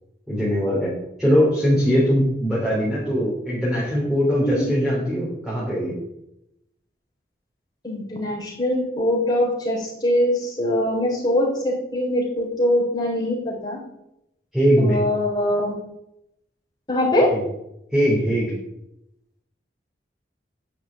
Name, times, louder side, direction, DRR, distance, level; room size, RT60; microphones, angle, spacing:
voice 1, 0.3-0.9 1.2-5.9 14.5-15.0 17.3-17.4 17.9-18.5, equal, ahead, -8 dB, 3.5 m, -21 dB
voice 2, 4.3-4.7 7.8-13.8 14.8-15.8 16.9-17.3, left 1 dB, 25° left, -4 dB, 3.7 m, -22 dB
9.7 x 6.0 x 7.6 m, 0.83 s
head